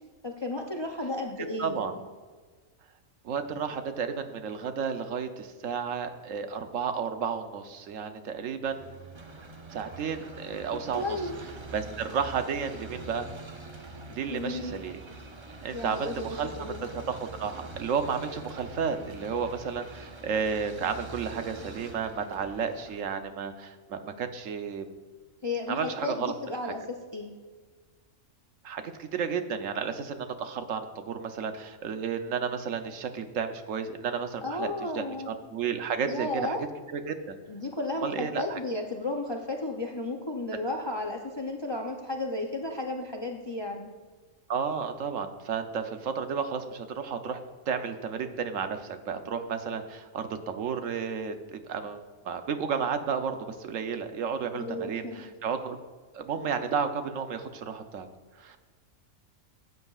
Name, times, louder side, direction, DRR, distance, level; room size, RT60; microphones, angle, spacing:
voice 1, 0.2-1.9 10.9-11.3 14.3-14.8 15.7-16.8 25.4-27.3 34.4-35.3 36.0-36.6 37.5-43.9 54.5-55.2, left 2 dB, 35° left, 2 dB, 0.4 m, -33 dB
voice 2, 1.6-1.9 3.2-8.9 9.7-11.2 11.7-13.3 14.1-15.0 15.6-16.5 17.1-24.9 25.7-26.3 26.6-26.7 28.6-36.6 36.9-37.3 38.0-38.6 40.5-40.6 44.5-47.4 47.7-55.0 55.4-55.8 56.1-58.1 58.4-58.6, right 6 dB, 75° right, 8 dB, 1.1 m, -32 dB
sound 1, 8.6-23.0, right 2 dB, 30° right, 0.5 m, -44 dB
15.0 x 8.0 x 2.4 m, 1.4 s
omnidirectional pair, 1.4 m